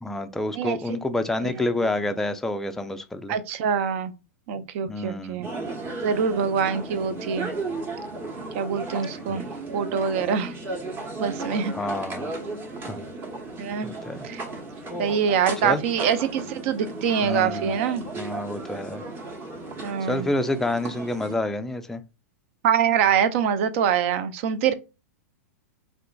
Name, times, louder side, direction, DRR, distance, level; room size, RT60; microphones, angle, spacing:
voice 1, 0.0-3.4 4.9-5.5 9.3-9.4 11.7-12.3 12.9-13.0 13.8-14.3 15.6-15.8 17.2-17.8 18.2-19.0 20.0-22.0, left 2 dB, 5° left, 0.3 m, -28 dB
voice 2, 3.3-4.1 4.5-5.5 6.0-7.5 8.5-9.5 9.7-10.5 11.2-11.7 13.6-13.9 14.2-14.4 15.0-18.0 19.8-20.3 22.6-24.7, right 7 dB, 55° right, 0.5 m, -24 dB
sound 1, 5.4-21.4, right 3 dB, 25° right, 0.9 m, -35 dB
3.6 x 2.5 x 2.2 m
hypercardioid pair, 110°, 8 cm